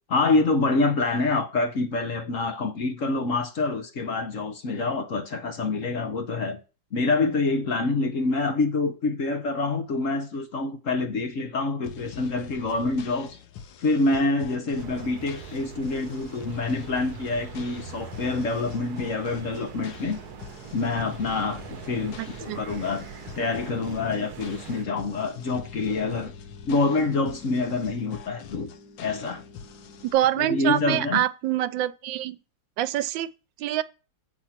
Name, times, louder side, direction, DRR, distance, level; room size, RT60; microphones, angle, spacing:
voice 1, 0.1-6.6 6.9-13.4 13.8-20.2 20.7-23.1 23.3-26.3 26.6-28.7 29.0-29.4 30.4-31.2, left 3 dB, 50° left, 1.2 m, -26 dB
sound 1, 11.8-30.1, left 7 dB, 90° left, 1.5 m, -45 dB
sound 2, 14.8-24.9, right 7 dB, 65° right, 1.2 m, -43 dB
sound 3, 20.1-30.1, left 2 dB, 10° right, 4.0 m, -51 dB
voice 2, 22.2-22.6 30.0-32.4 32.8-33.3 33.6-33.8, right 12 dB, 85° right, 1.3 m, -25 dB
8.4 x 4.9 x 5.8 m
omnidirectional pair, 2.0 m